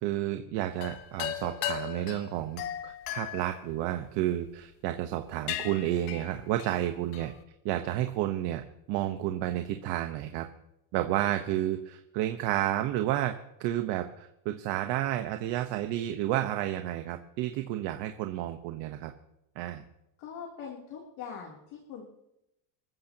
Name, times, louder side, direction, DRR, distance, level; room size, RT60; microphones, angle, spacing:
voice 1, 0.0-7.3 7.6-8.6 8.9-10.5 10.9-13.3 13.6-19.1 19.6-19.8, right 13 dB, 65° right, 6 dB, 1.2 m, -31 dB
sound 1, 0.7-4.5 5.0-5.2 5.5-7.4, left 12 dB, 85° left, 1.4 m, -37 dB
voice 2, 20.2-22.1, left 6 dB, 60° left, -2 dB, 3.3 m, -42 dB
26.5 x 14.5 x 2.9 m, 0.86 s
cardioid pair, 160°, 46 cm